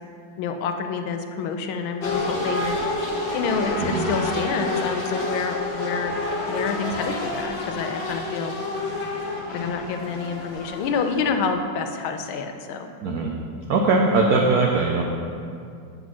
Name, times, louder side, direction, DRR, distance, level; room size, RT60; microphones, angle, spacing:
voice 1, 0.4-2.8 3.3-6.1 6.5-8.5 9.5-12.9, left 5 dB, 80° left, 6 dB, 1.4 m, -28 dB
sound 1, 2.0-11.5, left 2 dB, 45° left, 0.9 m, -29 dB
voice 2, 3.8-4.1 13.0-13.3 13.7-15.0, right 3 dB, 90° right, 1 dB, 0.8 m, -20 dB
7.6 x 4.0 x 6.1 m, 2.4 s
omnidirectional pair, 2.2 m